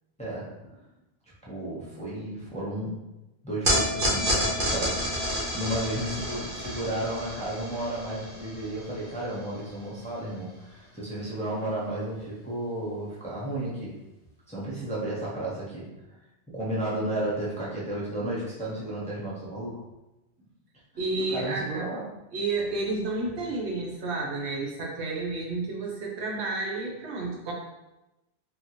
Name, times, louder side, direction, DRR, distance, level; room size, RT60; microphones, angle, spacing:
voice 1, 1.5-3.0 3.4-13.9 14.5-15.9 16.5-19.8 21.2-22.0, right 1 dB, 10° left, -7 dB, 0.5 m, -33 dB
sound 1, 3.6-10.0, equal, 55° right, 1.1 m, -30 dB
voice 2, 21.0-22.0 22.3-27.5, right 3 dB, 80° right, -2 dB, 1.0 m, -31 dB
3.8 x 2.1 x 2.8 m, 0.99 s
omnidirectional pair, 1.1 m